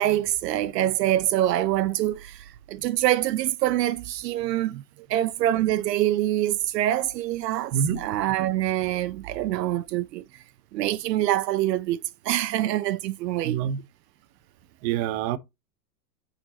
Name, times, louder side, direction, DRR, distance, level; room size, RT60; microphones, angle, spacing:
voice 1, 0.0-4.8 5.1-10.4 10.7-12.0 12.2-13.6, right 13 dB, 75° right, 0.6 m, -25 dB
voice 2, 13.4-13.8 14.8-15.4, right 9 dB, 35° right, 0.8 m, -26 dB
6.3 x 5.3 x 2.8 m
hypercardioid pair, 125°, 49 cm